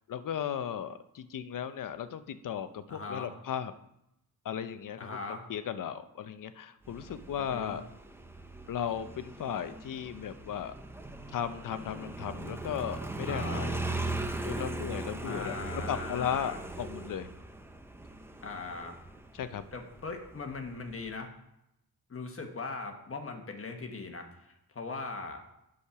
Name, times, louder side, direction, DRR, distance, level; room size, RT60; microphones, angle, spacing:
voice 1, 0.1-3.7 4.4-5.1 5.5-7.8 8.7-10.7 11.3-13.8 14.4-15.5 15.9-17.3 19.3-19.6, left 9 dB, 55° left, 12 dB, 0.7 m, -36 dB
voice 2, 2.9-3.3 5.0-5.4 7.4-7.8 13.3-13.7 15.2-16.6 18.4-19.0 19.7-21.3 22.1-25.4, left 3 dB, 35° left, 4 dB, 1.2 m, -40 dB
Motorcycle, 6.8-21.2, right 2 dB, 5° right, 0.7 m, -39 dB
8.4 x 6.5 x 5.8 m, 0.85 s
wide cardioid pair, 130°, 38 cm